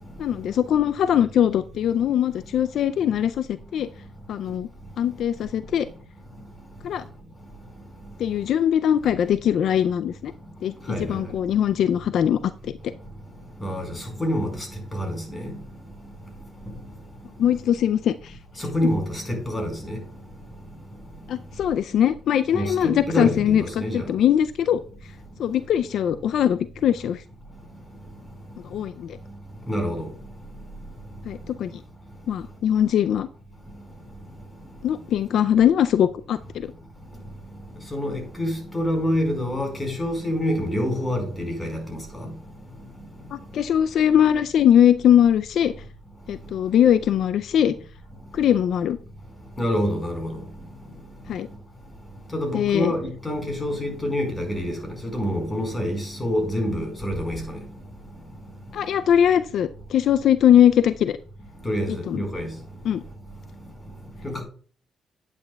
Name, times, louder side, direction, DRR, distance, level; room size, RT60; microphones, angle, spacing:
voice 1, 0.2-3.9 4.3-4.7 5.0-5.9 6.8-7.0 8.2-10.3 10.6-10.7 11.1-12.7 17.4-18.4 18.8-18.9 21.3-24.8 25.4-27.2 28.7-29.2 31.3-31.7 32.3-33.3 34.8-36.7 43.3-45.7 46.3-47.7 48.3-49.0 51.3-51.5 52.5-52.9 58.7-61.2 62.1-62.2 62.8-63.0, left 10 dB, 70° left, 0.3 m, -21 dB
voice 2, 10.9-11.2 13.6-14.7 14.9-15.5 18.6-20.0 22.5-24.1 29.7-30.1 37.9-42.3 49.6-50.3 52.3-57.6 61.6-62.5 64.2-64.4, equal, 20° left, 4.5 m, -27 dB
10.5 x 8.9 x 2.3 m
cardioid pair, 90°, 0 cm